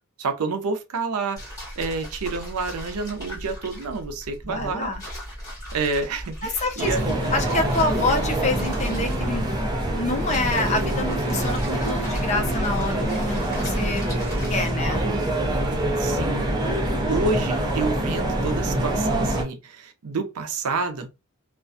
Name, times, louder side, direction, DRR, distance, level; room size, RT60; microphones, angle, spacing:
voice 1, 0.2-4.9 5.7-7.2 16.0-16.6 17.1-21.1, right 4 dB, 85° right, 0.5 m, -29 dB
sound 1, 1.4-14.9, equal, 15° left, 1.2 m, -38 dB
voice 2, 4.4-5.0 6.4-7.0 7.3-9.5 9.9-14.0 14.5-15.0, left 2 dB, 30° left, 0.5 m, -27 dB
sound 2, 6.8-19.4, right 1 dB, 20° right, 0.5 m, -25 dB
2.4 x 2.2 x 2.5 m
head